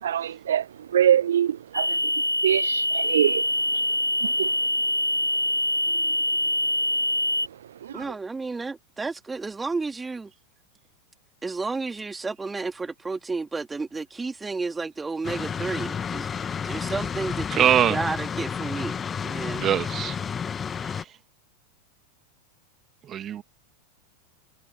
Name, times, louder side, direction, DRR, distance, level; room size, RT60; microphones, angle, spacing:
voice 1, 0.0-4.9 5.9-6.2 7.8-8.1, right 10 dB, 65° right, 0.4 m, -26 dB
sound 1, 1.7-7.5, left 1 dB, 90° left, 2.5 m, -24 dB
voice 2, 7.9-10.3 11.4-16.3 16.6-17.6 17.9-18.9 19.2-19.6, right 3 dB, 10° right, 3.4 m, -31 dB
sound 2, 15.2-21.0, left 7 dB, 20° left, 2.0 m, -31 dB
voice 3, 17.5-18.0 19.6-20.2 23.1-23.4, right 10 dB, 30° right, 2.6 m, -22 dB
figure-of-eight pair, 90°, 0 cm